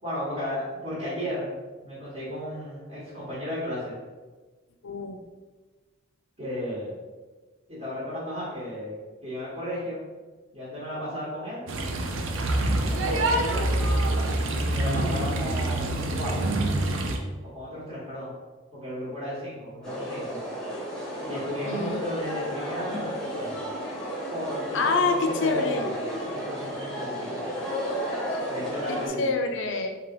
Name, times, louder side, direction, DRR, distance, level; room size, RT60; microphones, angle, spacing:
voice 1, 0.0-1.5 1.8-4.0 6.4-6.9 7.7-8.9 9.2-10.0 10.5-11.7 12.8-13.9 14.6-16.5 17.4-18.3 18.7-20.4 21.2-23.6 24.3-26.0 26.3-27.4 28.5-29.3, equal, 35° right, -10 dB, 1.2 m, -34 dB
voice 2, 4.8-5.2 21.7-22.0 24.7-25.9 28.9-29.9, left 3 dB, 65° left, 4 dB, 0.4 m, -26 dB
sound 1, 11.7-17.2, right 1 dB, 80° right, 0.5 m, -26 dB
sound 2, 19.8-29.1, equal, 5° left, 0.9 m, -33 dB
3.3 x 2.9 x 3.7 m, 1.3 s
head